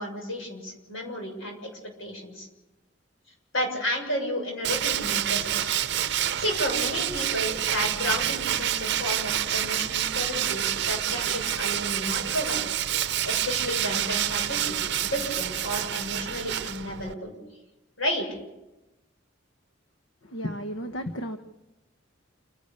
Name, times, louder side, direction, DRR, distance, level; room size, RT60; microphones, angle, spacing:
voice 1, 0.0-1.7 2.0-2.5 3.5-5.7 6.4-12.6 13.2-17.3 18.0-18.3, equal, 90° left, 2 dB, 7.1 m, -32 dB
Tools, 4.6-17.1, right 10 dB, 60° right, 0.7 m, -28 dB
voice 2, 20.3-21.4, equal, 70° left, 7 dB, 1.1 m, -33 dB
29.0 x 12.0 x 8.5 m, 0.99 s
head